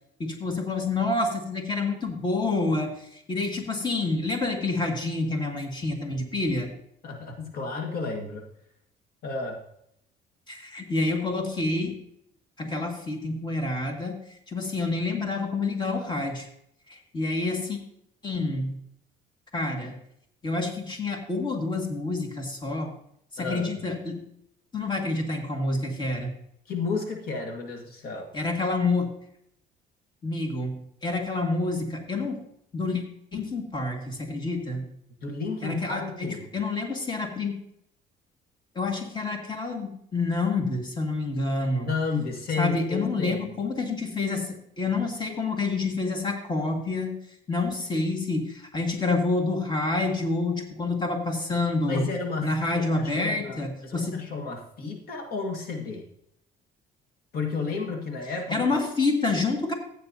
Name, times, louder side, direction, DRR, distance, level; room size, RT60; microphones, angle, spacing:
voice 1, 0.2-6.7 10.5-12.0 12.6-16.5 16.9-17.8 18.2-18.8 19.5-20.0 20.4-22.9 23.3-24.2 24.7-26.3 28.3-29.1 30.2-32.4 32.7-33.0 33.3-34.9 35.6-37.5 38.8-41.9 42.6-47.2 47.5-52.1 52.4-54.2 58.5-59.7, left 3 dB, 25° left, 2 dB, 2.0 m, -28 dB
voice 2, 7.0-8.5 9.2-9.6 23.4-23.7 26.7-28.3 35.2-36.4 41.7-43.5 51.9-56.0 57.3-58.7, left 4 dB, 65° left, 3 dB, 1.8 m, -32 dB
14.5 x 8.9 x 2.8 m, 0.73 s
cardioid pair, 110°, 17 cm